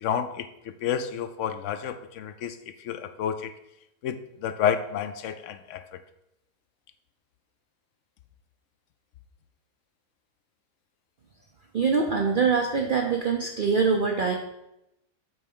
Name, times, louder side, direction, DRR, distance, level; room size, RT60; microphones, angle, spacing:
voice 1, 0.0-3.5 4.0-6.0, left 8 dB, 70° left, 10 dB, 0.7 m, -30 dB
voice 2, 11.7-14.3, right 5 dB, 75° right, 3 dB, 0.4 m, -24 dB
8.9 x 3.3 x 5.4 m, 0.86 s
omnidirectional pair, 1.8 m